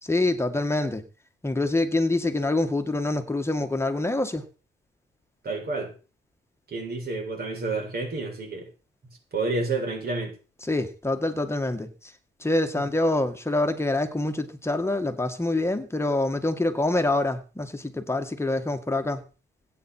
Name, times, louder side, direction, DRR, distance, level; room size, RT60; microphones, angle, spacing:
voice 1, 0.0-1.0 1.4-4.5 10.7-12.1 12.4-19.2, left 2 dB, 15° left, 7 dB, 1.9 m, -26 dB
voice 2, 5.4-5.9 6.7-8.7 9.3-10.4, right 3 dB, 50° right, 1 dB, 7.5 m, -29 dB
21.5 x 9.0 x 4.5 m, 0.35 s
cardioid pair, 90°, 20 cm